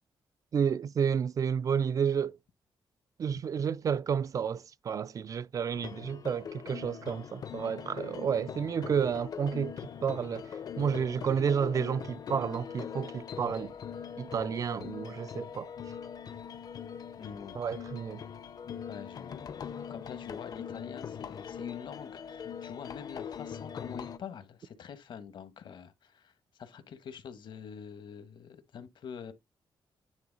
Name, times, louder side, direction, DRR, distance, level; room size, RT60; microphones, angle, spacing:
voice 1, 0.5-2.4 3.2-9.7 10.0-10.5 10.8-13.7 14.2-15.7 17.6-18.2, right 7 dB, 40° right, 0.3 m, -31 dB
sound 1, 5.7-24.2, left 7 dB, 50° left, 0.7 m, -42 dB
voice 2, 17.2-17.6 18.8-29.3, left 7 dB, 65° left, 1.2 m, -45 dB
9.6 x 3.8 x 3.9 m
wide cardioid pair, 170°, 9 cm